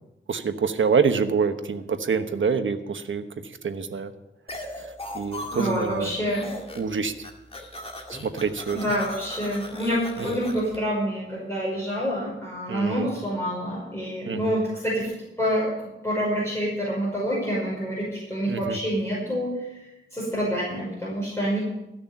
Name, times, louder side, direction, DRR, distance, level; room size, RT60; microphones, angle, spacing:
voice 1, 0.3-3.2 3.6-4.1 4.7-4.9 5.1-6.1 6.7-7.1 8.1-8.8 10.2-10.3 12.7-13.1 14.2-14.6 18.5-18.8, right 5 dB, 80° right, 8 dB, 1.1 m, -26 dB
sound 1, 4.5-6.0 6.3-6.9 7.2-10.8, left 1 dB, 30° left, 2.1 m, -38 dB
voice 2, 5.5-6.6 8.7-15.1 15.4-15.7 16.0-19.8 20.1-21.6, equal, 15° left, -6 dB, 5.5 m, -27 dB
14.5 x 6.5 x 9.1 m, 0.91 s
wide cardioid pair, 90°, 20 cm